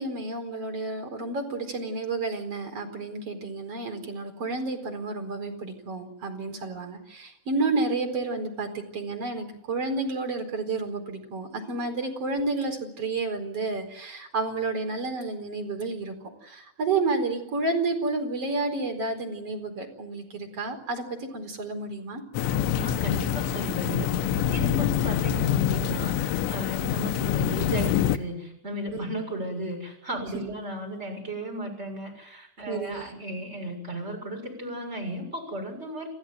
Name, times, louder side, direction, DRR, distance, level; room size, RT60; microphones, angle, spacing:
voice 1, 0.0-16.2 16.4-22.2 24.6-24.9 28.9-29.0 32.7-33.2, right 3 dB, 35° right, 5 dB, 5.0 m, -30 dB
sound 1, 22.3-28.2, left 10 dB, 80° left, 3.3 m, -26 dB
voice 2, 22.8-36.1, right 1 dB, 15° right, 3 dB, 7.0 m, -35 dB
28.5 x 15.5 x 9.4 m, 0.85 s
omnidirectional pair, 5.3 m